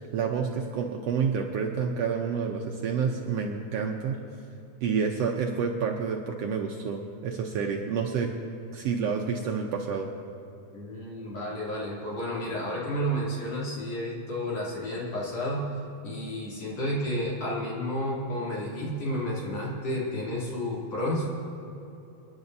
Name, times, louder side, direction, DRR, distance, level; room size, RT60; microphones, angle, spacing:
voice 1, 0.0-4.2 4.8-8.3 8.7-10.1, right 6 dB, 70° right, 1 dB, 1.6 m, -29 dB
voice 2, 10.7-15.7 16.0-21.3, equal, 55° left, -6 dB, 3.9 m, -31 dB
28.0 x 10.5 x 2.7 m, 2.9 s
omnidirectional pair, 3.5 m